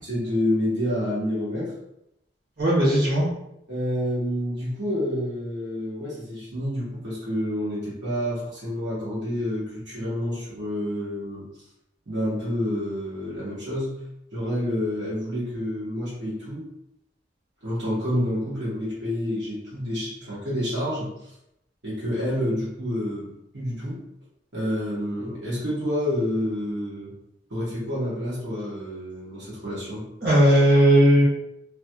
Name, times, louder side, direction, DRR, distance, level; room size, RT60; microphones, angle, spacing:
voice 1, 0.1-1.7 3.7-11.5 12.1-13.9 14.3-16.6 17.6-21.3 21.8-23.3 23.5-24.0 24.5-27.1 27.5-30.0, equal, 80° right, -9 dB, 1.4 m, -28 dB
voice 2, 2.6-3.3 30.2-31.2, equal, 65° right, -9 dB, 1.4 m, -17 dB
3.1 x 2.4 x 2.8 m, 0.82 s
head